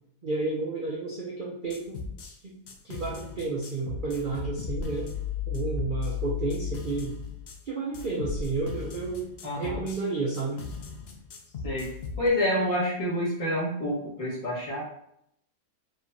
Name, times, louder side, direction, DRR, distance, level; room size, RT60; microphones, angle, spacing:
voice 1, 0.2-2.0 2.4-2.6 2.8-5.1 5.5-7.2 7.7-9.3 9.6-10.6, right 3 dB, 65° right, -4 dB, 0.5 m, -31 dB
sound 1, 1.7-2.3 2.7-7.6 7.9-10.0 10.3-12.3, left 6 dB, 65° left, 0.6 m, -36 dB
voice 2, 9.4-9.8 11.6-11.9 12.2-14.8, left 1 dB, 20° left, -7 dB, 1.5 m, -28 dB
4.8 x 3.2 x 2.7 m, 0.74 s
omnidirectional pair, 1.8 m